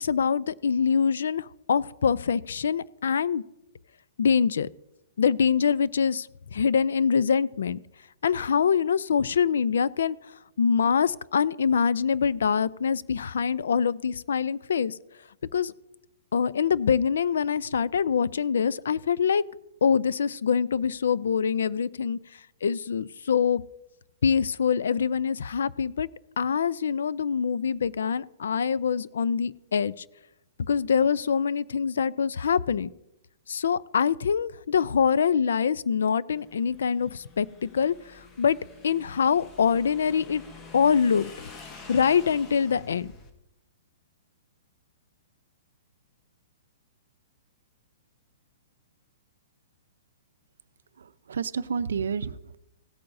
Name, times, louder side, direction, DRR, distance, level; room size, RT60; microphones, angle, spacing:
voice 1, 0.0-3.4 4.2-4.7 5.2-7.8 8.2-10.2 10.6-14.9 15.5-15.7 16.3-19.4 19.8-22.2 22.6-23.6 24.2-26.1 26.4-29.9 30.7-32.9 33.5-37.9 38.4-38.6 38.8-40.4 40.7-41.3 41.9-43.1, left 6 dB, 85° left, 19 dB, 0.4 m, -24 dB
Motorcycle / Engine, 36.3-43.3, left 4 dB, 20° left, 1.1 m, -48 dB
voice 2, 51.0-52.6, right 6 dB, 85° right, 14 dB, 0.5 m, -31 dB
17.0 x 8.7 x 2.6 m, 0.89 s
hypercardioid pair, 160°, 0 cm